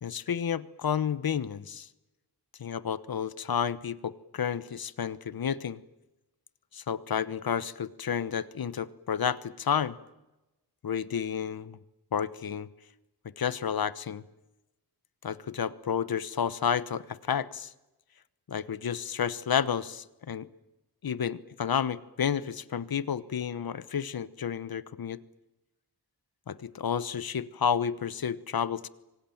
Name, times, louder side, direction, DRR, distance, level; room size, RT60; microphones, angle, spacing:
voice 1, 0.0-1.9 2.6-5.8 6.7-10.0 10.8-11.8 12.1-12.7 13.2-14.2 15.2-17.7 18.5-20.5 21.0-25.2 26.5-28.9, left 8 dB, 65° left, 17 dB, 1.1 m, -31 dB
30.0 x 25.0 x 7.3 m, 1.0 s
wide cardioid pair, 150°, 39 cm